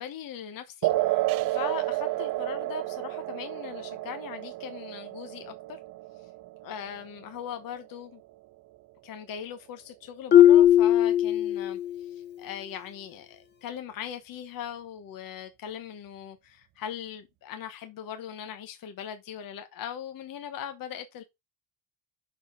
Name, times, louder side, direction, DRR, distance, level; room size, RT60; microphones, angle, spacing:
voice 1, 0.0-5.8 6.6-8.2 9.0-21.2, left 9 dB, 50° left, 1.1 m, -40 dB
sound 1, 0.8-7.9, right 17 dB, 50° right, 0.6 m, -31 dB
Marimba xylophone, 10.3-12.1, left 11 dB, 25° left, 0.6 m, -18 dB
5.9 x 5.5 x 5.5 m
cardioid pair, 130°, 45 cm